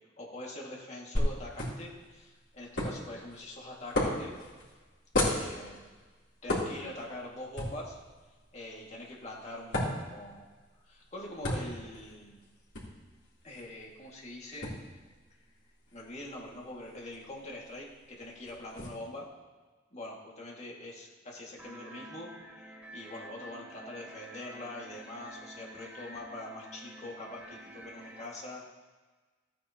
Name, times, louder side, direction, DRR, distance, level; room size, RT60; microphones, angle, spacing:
voice 1, 0.2-4.4 5.2-5.9 6.4-8.0 8.5-10.5 10.9-12.4 13.4-14.7 15.9-19.3 19.9-28.6, left 1 dB, 35° left, -3 dB, 2.0 m, -44 dB
sound 1, 1.2-18.9, left 1 dB, 75° left, 3.2 m, -37 dB
sound 2, 21.6-28.3, right 1 dB, 10° right, 1.1 m, -49 dB
15.0 x 9.1 x 2.9 m, 1.3 s
head